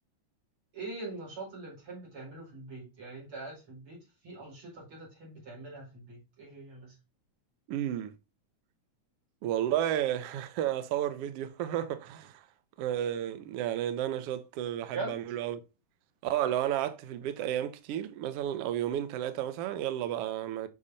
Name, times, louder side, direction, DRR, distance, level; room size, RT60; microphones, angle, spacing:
voice 1, 0.7-7.0 14.9-15.2, right 3 dB, 45° right, 5.2 m, -42 dB
voice 2, 7.7-8.1 9.4-12.4 12.8-15.6 16.2-20.7, right 11 dB, 80° right, 1.3 m, -32 dB
8.6 x 5.5 x 2.6 m
omnidirectional pair, 3.5 m